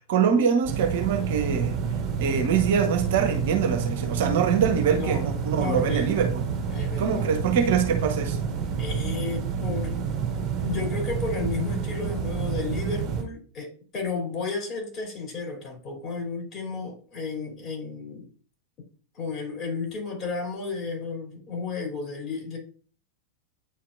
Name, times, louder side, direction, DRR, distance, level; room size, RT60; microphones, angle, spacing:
voice 1, 0.0-1.8 2.2-6.4 7.0-8.4, right 7 dB, 55° right, 0.8 m, -24 dB
sound 1, 0.6-13.2, right 6 dB, 30° right, 1.8 m, -29 dB
voice 2, 4.9-5.3 5.5-6.3 6.7-7.2 8.8-10.0 10.6-18.3 19.1-22.6, left 4 dB, 30° left, 3.1 m, -32 dB
9.1 x 4.4 x 2.5 m
figure-of-eight pair, 90°, 0 cm